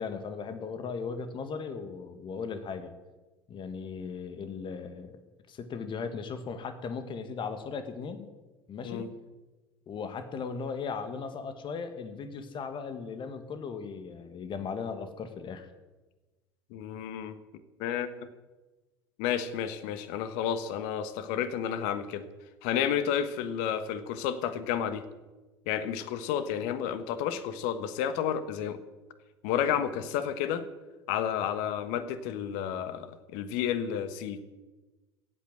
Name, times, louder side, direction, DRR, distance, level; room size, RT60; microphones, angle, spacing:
voice 1, 0.0-2.9 3.5-5.2 5.5-8.3 8.7-9.1 9.9-15.7, left 5 dB, 40° left, 8 dB, 1.9 m, -37 dB
voice 2, 16.7-17.4 17.8-18.3 19.2-22.2 22.6-25.0 25.7-28.8 29.4-30.6 31.1-34.4, left 9 dB, 60° left, 12 dB, 1.4 m, -31 dB
16.0 x 8.5 x 7.9 m, 1.2 s
figure-of-eight pair, 70°, 13 cm